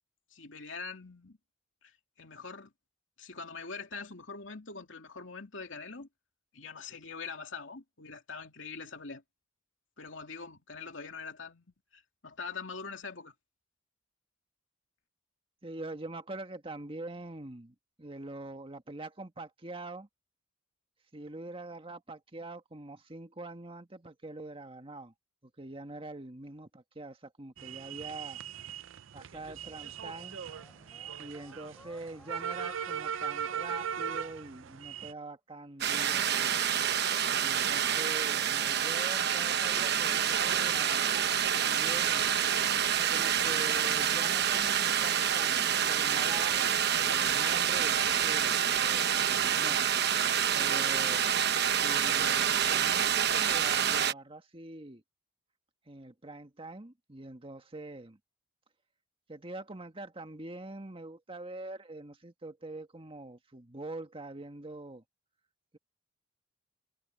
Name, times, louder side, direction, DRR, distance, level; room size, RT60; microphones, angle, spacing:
voice 1, 0.3-1.4 1.8-1.9 2.2-2.7 3.2-6.1 6.5-9.2 10.0-11.7 11.9-13.3, left 4 dB, 70° left, 2.7 m, -43 dB
voice 2, 15.6-20.1 21.1-25.1 25.6-28.4 29.1-30.4 31.2-36.7 37.4-42.3 43.1-49.8 50.5-51.3 51.8-55.0 55.9-58.2 59.3-65.0, right 2 dB, 30° right, 1.7 m, -44 dB
sound 1, 27.6-35.1, right 7 dB, 75° right, 0.6 m, -39 dB
sound 2, 29.3-34.8, left 1 dB, 5° left, 6.5 m, -57 dB
sound 3, 35.8-54.1, right 9 dB, 55° right, 1.1 m, -27 dB
head